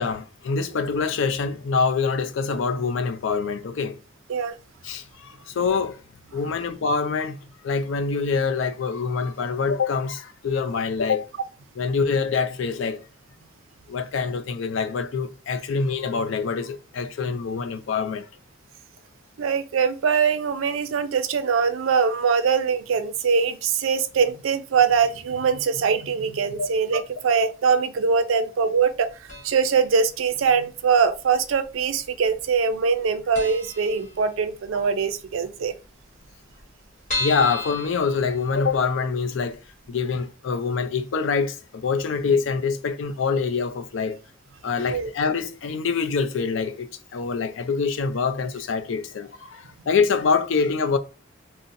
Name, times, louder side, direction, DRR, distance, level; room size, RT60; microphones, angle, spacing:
voice 1, 0.0-4.0 4.8-6.0 6.3-7.4 7.6-11.3 11.8-13.0 13.9-18.3 26.6-26.7 28.3-28.4 37.2-39.6 39.9-44.2 44.6-51.0, left 5 dB, 75° left, 0.4 m, -25 dB
voice 2, 19.4-29.1 29.4-35.7 44.9-45.1, right 6 dB, 85° right, 0.4 m, -22 dB
sound 1, 29.3-29.8 30.1-30.2 31.1-31.8 32.1-32.3 32.5-32.6 33.0-33.1 33.3-34.7 35.0-35.1 35.4-35.5 35.7-35.8 36.3-38.9 39.4-39.5 39.8-39.9, left 2 dB, 35° left, 1.0 m, -34 dB
3.8 x 2.0 x 2.6 m
head